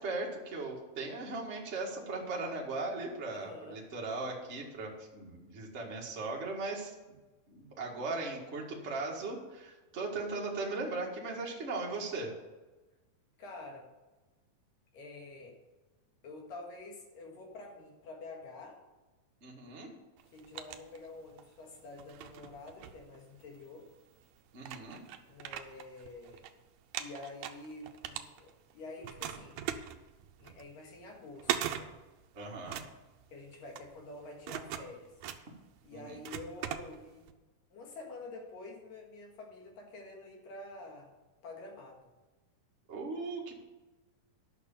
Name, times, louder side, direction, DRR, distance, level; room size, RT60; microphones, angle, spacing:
voice 1, 0.0-7.1 7.5-12.3 19.4-19.9 24.5-25.0 32.3-32.8 35.9-36.2 42.9-43.5, right 3 dB, 30° right, -2 dB, 1.4 m, -38 dB
voice 2, 3.3-3.8 13.4-13.9 14.9-15.6 16.2-18.8 20.3-23.9 25.2-26.5 27.0-29.6 30.4-31.9 33.3-35.1 35.8-37.3 37.7-41.1 41.4-42.0, left 2 dB, 75° left, 1 dB, 3.4 m, -48 dB
sound 1, 20.2-21.5 21.9-23.6 24.2-24.3 24.6-26.5 26.8-28.7 29.0-37.3, right 10 dB, 80° right, 1.6 m, -40 dB
11.0 x 6.1 x 7.2 m, 1.2 s
omnidirectional pair, 4.0 m